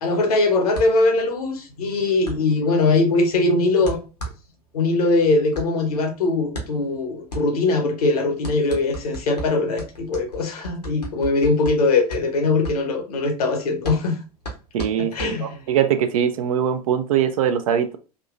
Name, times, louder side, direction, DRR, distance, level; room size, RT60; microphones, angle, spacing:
voice 1, 0.0-4.0 4.7-14.2 15.0-15.6, left 3 dB, 70° left, 0.9 m, -21 dB
sound 1, 0.7-15.8, right 2 dB, 90° left, 1.1 m, -36 dB
voice 2, 14.7-18.0, right 9 dB, 60° right, 0.4 m, -22 dB
3.6 x 2.7 x 2.4 m
figure-of-eight pair, 80°, 20 cm